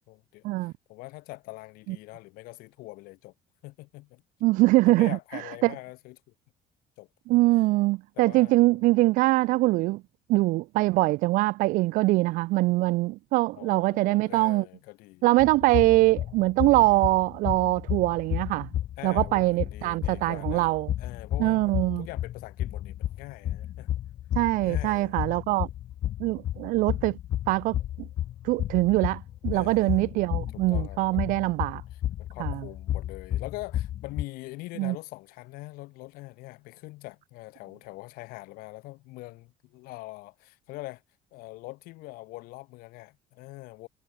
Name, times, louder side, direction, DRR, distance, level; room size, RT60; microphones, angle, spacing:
voice 1, 0.0-3.3 3.6-4.2 4.9-6.3 7.0-7.4 8.2-8.8 13.5-15.3 19.0-20.7 21.0-23.9 24.5-25.2 29.5-30.2 30.5-31.5 32.2-41.0 41.3-43.9, left 21 dB, 80° left, 3.7 m, -43 dB
voice 2, 4.4-5.7 7.3-10.0 10.3-14.6 15.2-18.7 19.0-20.9 21.4-22.1 24.4-25.7 26.2-27.2 27.5-28.1 28.4-31.8 32.4-32.6 34.8-35.0, right 20 dB, 65° right, 0.4 m, -23 dB
sound 1, 15.4-34.2, left 12 dB, 40° left, 0.5 m, -32 dB
cardioid pair, 165°, 15 cm